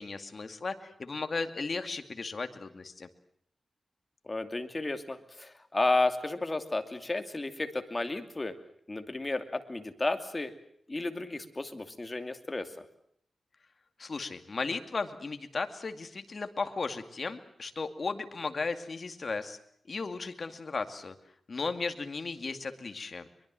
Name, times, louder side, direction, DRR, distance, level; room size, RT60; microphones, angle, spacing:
voice 1, 0.0-3.1 14.0-19.6 19.9-21.1 21.5-23.3, left 4 dB, 50° left, 8 dB, 2.4 m, -35 dB
voice 2, 4.2-8.5 8.9-10.5 10.9-12.8, left 2 dB, 25° left, 7 dB, 2.6 m, -32 dB
23.5 x 23.5 x 7.7 m, 0.70 s
wide cardioid pair, 95°, 0 cm